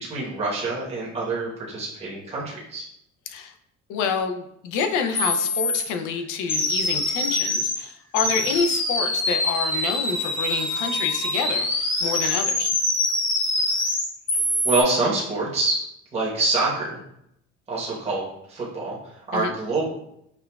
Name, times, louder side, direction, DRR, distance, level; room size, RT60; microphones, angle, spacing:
voice 1, 0.0-2.9 14.6-15.8 16.1-17.0 17.7-18.2 18.5-19.9, right 2 dB, 20° right, -6 dB, 1.0 m, -26 dB
voice 2, 3.9-12.7 19.3-19.5, left 5 dB, 85° left, 6 dB, 0.5 m, -28 dB
sound 1, 4.8-4.9 5.1-5.8 6.5-7.8 8.1-14.8, left 2 dB, 40° left, 1.0 m, -24 dB
5.8 x 2.3 x 2.2 m, 0.76 s
cardioid pair, 155°, 30 cm